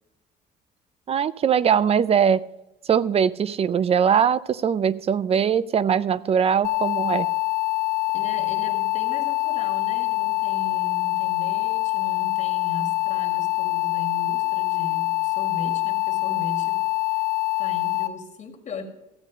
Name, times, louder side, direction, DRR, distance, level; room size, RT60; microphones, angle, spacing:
voice 1, 1.1-2.4 2.9-7.3, right 7 dB, 35° right, 17 dB, 0.4 m, -21 dB
sound 1, 6.6-18.1, left 22 dB, 85° left, 0.9 m, -25 dB
voice 2, 8.1-16.8 17.1-17.2 17.6-18.8, left 2 dB, 45° left, 4 dB, 2.0 m, -38 dB
14.0 x 8.1 x 5.1 m, 0.92 s
cardioid pair, 110°, 17 cm